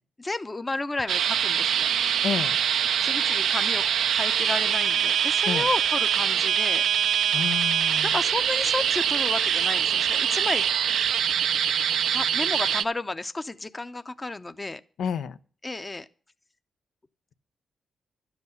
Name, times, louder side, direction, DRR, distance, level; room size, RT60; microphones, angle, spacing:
voice 1, 0.2-1.9 3.0-3.8 4.1-6.8 8.0-10.7 12.1-14.8 15.6-16.1, left 2 dB, 20° left, 0.7 m, -32 dB
sound 1, 1.1-12.8, right 8 dB, 85° right, 0.5 m, -24 dB
voice 2, 2.2-2.6 5.5-5.7 7.3-8.1 15.0-15.4, left 7 dB, 85° left, 0.7 m, -30 dB
12.5 x 8.1 x 8.0 m
cardioid pair, 100°, 0 cm